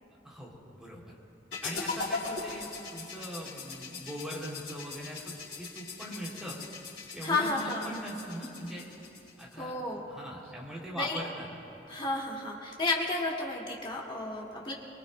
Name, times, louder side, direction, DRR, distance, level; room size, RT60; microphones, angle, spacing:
voice 1, 0.2-1.0 1.6-6.6 7.1-8.9 9.4-9.7 10.1-11.5, equal, 5° right, -4 dB, 3.0 m, -41 dB
sound 1, 1.5-9.5, left 4 dB, 80° left, 4.6 m, -40 dB
voice 2, 7.2-7.9 9.6-10.0 10.9-11.2 11.9-14.7, left 2 dB, 30° left, -3 dB, 2.2 m, -32 dB
24.5 x 22.5 x 2.2 m, 2.8 s
head